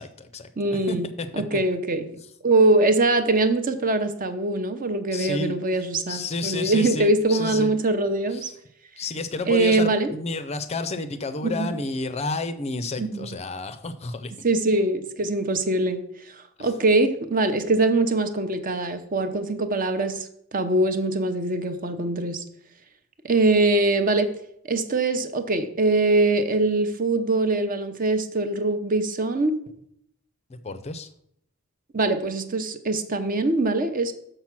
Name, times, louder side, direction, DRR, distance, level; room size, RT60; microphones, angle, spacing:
voice 1, 0.0-0.5 0.9-1.3 5.1-5.6 6.1-7.7 8.3-8.5 9.0-14.3 16.6-16.7 30.5-31.1, left 3 dB, 30° left, 10 dB, 0.5 m, -31 dB
voice 2, 0.6-1.1 1.3-2.1 2.4-8.5 9.5-10.1 11.4-11.8 13.0-13.4 14.4-22.4 23.2-24.3 24.7-29.5 31.9-34.1, right 2 dB, 40° right, 8 dB, 0.8 m, -23 dB
6.8 x 5.9 x 5.9 m, 0.71 s
head